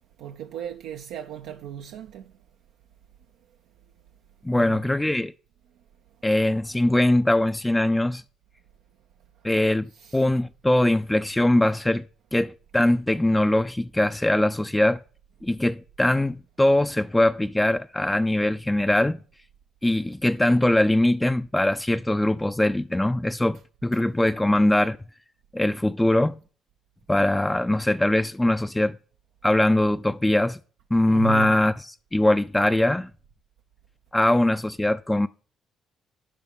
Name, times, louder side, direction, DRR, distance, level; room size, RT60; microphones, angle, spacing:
voice 1, 0.2-2.3 4.5-4.9 9.9-10.2 23.9-24.0 31.1-31.7, right 10 dB, 80° right, 0.4 m, -36 dB
voice 2, 4.4-5.3 6.2-8.2 9.4-9.9 10.1-12.0 12.3-15.0 15.4-19.2 19.8-25.0 25.5-26.4 27.1-29.0 29.4-30.6 30.9-31.7 32.1-33.1 34.1-35.3, left 1 dB, 10° left, 0.4 m, -22 dB
11.0 x 4.9 x 3.6 m
hypercardioid pair, 55°, 0 cm